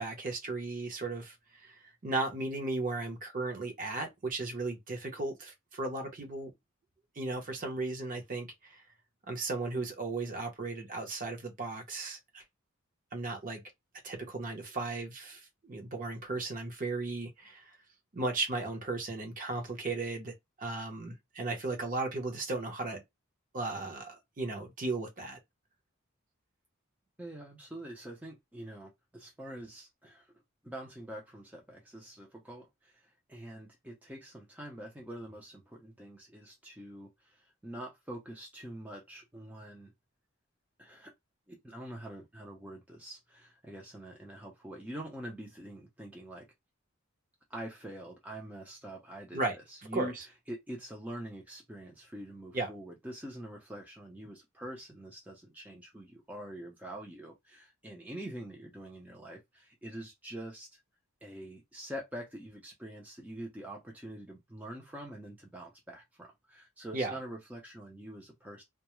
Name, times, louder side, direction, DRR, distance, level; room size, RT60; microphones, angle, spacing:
voice 1, 0.0-1.3 1.6-1.7 2.0-6.5 7.2-8.8 9.3-12.4 13.1-13.6 14.0-17.7 18.1-20.3 20.6-23.0 23.5-25.4 49.3-49.6 49.9-50.2 52.5-52.7 66.9-67.1, right 3 dB, 40° right, 0.7 m, -35 dB
voice 2, 27.2-30.3 30.6-39.9 40.8-41.1 41.5-46.5 47.5-50.1 50.5-60.8 61.2-68.6, right 1 dB, 5° right, 0.4 m, -45 dB
2.2 x 2.0 x 2.9 m
head